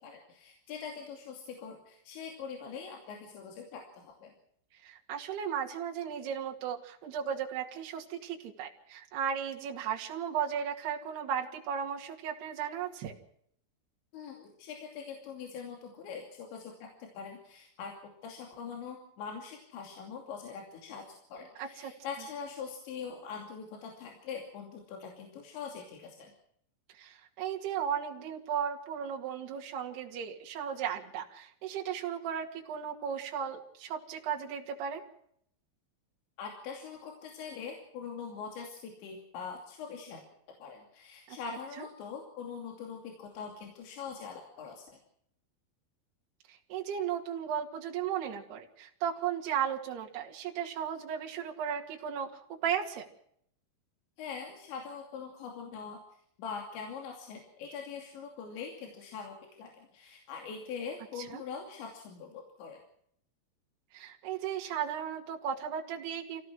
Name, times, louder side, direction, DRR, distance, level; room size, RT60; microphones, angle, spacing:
voice 1, 0.0-4.3 14.1-16.9 17.1-17.9 18.2-26.3 36.4-40.2 40.6-45.0 54.2-56.0 56.4-62.8, left 6 dB, 80° left, 2 dB, 5.0 m, -43 dB
voice 2, 4.8-13.1 21.6-21.9 26.9-35.0 41.3-41.4 41.8-41.9 46.5-53.1 61.2-61.4 63.9-66.4, right 8 dB, 65° right, 1 dB, 4.1 m, -35 dB
27.0 x 16.5 x 6.2 m, 0.68 s
omnidirectional pair, 5.1 m